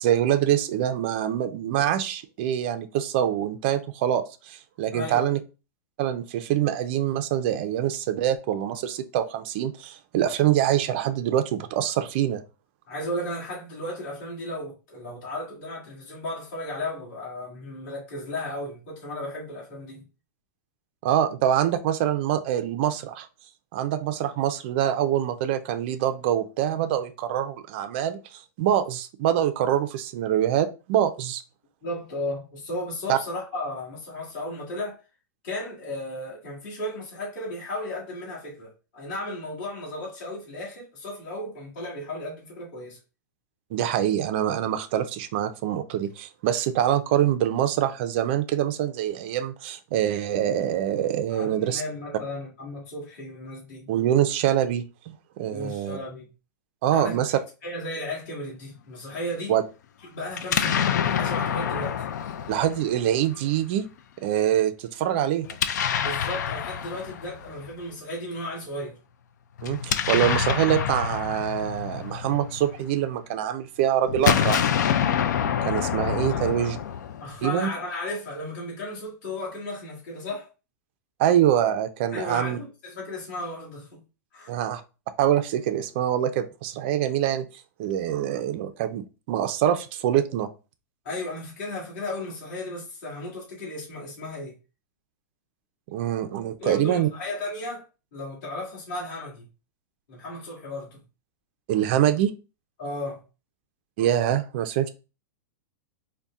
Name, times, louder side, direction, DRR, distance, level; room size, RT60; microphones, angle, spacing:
voice 1, 0.0-5.4 6.0-12.4 21.0-23.3 23.7-31.4 33.1-33.2 43.7-51.8 53.9-56.0 56.8-57.3 59.5-59.6 62.5-63.8 64.2-65.5 69.6-74.7 75.6-76.8 77.4-77.7 81.2-82.6 84.5-84.8 85.2-87.5 87.8-90.5 95.9-97.1 101.7-102.3 104.0-104.9, right 11 dB, 35° right, 0.4 m, -25 dB
voice 2, 4.9-5.3 12.9-20.1 31.8-35.0 35.4-43.0 51.3-53.9 55.5-56.3 56.9-59.5 60.1-62.1 66.0-69.0 76.3-76.7 77.2-80.5 82.1-84.0 84.3-84.6 91.0-94.6 96.6-97.8 98.1-99.5 100.1-101.0 102.8-103.2, left 1 dB, 40° left, 1.8 m, -34 dB
Explosion, 60.3-63.4 65.5-67.7 69.6-73.0 74.1-77.5, left 8 dB, 65° left, 0.4 m, -27 dB
4.1 x 2.1 x 3.5 m
supercardioid pair, 170°, 10 cm